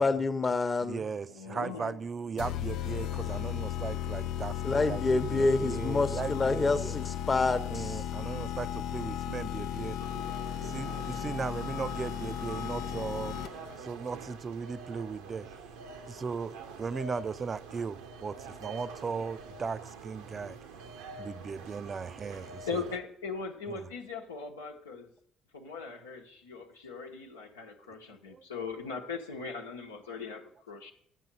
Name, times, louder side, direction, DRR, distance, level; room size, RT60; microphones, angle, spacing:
voice 1, 0.0-1.0 4.6-8.0, left 3 dB, 30° left, 10 dB, 0.9 m, -27 dB
voice 2, 0.8-7.0 7.7-10.0 10.6-15.5 16.1-20.6 21.2-22.8 23.7-23.9 28.3-28.4, right 5 dB, 35° right, 15 dB, 0.5 m, -37 dB
voice 3, 1.3-1.9 22.7-25.1 25.5-30.9, left 4 dB, 80° left, 1 dB, 1.0 m, -39 dB
sound 1, 2.4-13.8, left 11 dB, 60° left, 0.4 m, -35 dB
sound 2, 10.0-23.0, right 4 dB, 70° right, 0.8 m, -46 dB
11.0 x 7.6 x 5.4 m, 0.68 s
figure-of-eight pair, 50°, 0 cm